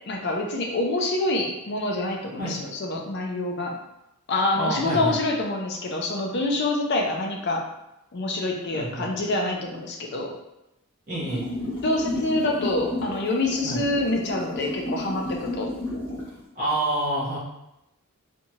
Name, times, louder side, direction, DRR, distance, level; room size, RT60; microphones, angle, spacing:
voice 1, 0.0-3.8 4.3-7.6 8.1-10.4 11.8-15.7, left 2 dB, 50° left, 1 dB, 0.5 m, -26 dB
voice 2, 4.6-5.2 8.7-9.1 11.1-11.5 13.6-13.8 16.5-17.4, right 1 dB, 40° right, -12 dB, 0.8 m, -27 dB
sound 1, 11.2-16.4, left 1 dB, 10° left, 0.8 m, -32 dB
2.7 x 2.2 x 2.8 m, 0.88 s
head